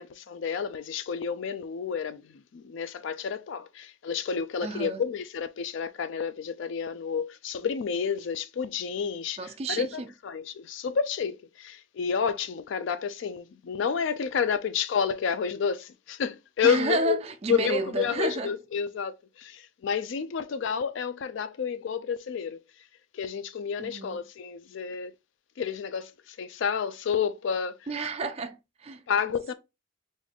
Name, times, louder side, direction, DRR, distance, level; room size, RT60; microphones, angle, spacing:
voice 1, 0.0-9.4 9.7-17.2 17.5-22.6 23.1-25.1 25.6-27.8 29.1-29.5, left 6 dB, 65° left, 0.3 m, -30 dB
voice 2, 4.6-5.0 9.4-10.1 16.6-18.5 23.8-24.2 27.9-29.0, right 3 dB, 30° right, 0.3 m, -31 dB
3.7 x 2.6 x 3.4 m
head